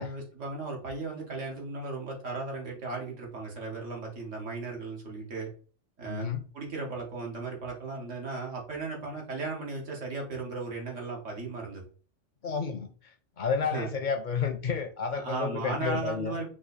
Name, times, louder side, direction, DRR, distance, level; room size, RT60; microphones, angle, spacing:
voice 1, 0.0-5.5 6.0-6.3 6.5-11.8 13.6-13.9 15.1-16.5, right 3 dB, 80° right, 1.8 m, -36 dB
voice 2, 6.1-6.4 12.4-12.9 13.4-16.4, left 6 dB, 50° left, 0.6 m, -31 dB
4.8 x 2.7 x 4.0 m
omnidirectional pair, 1.2 m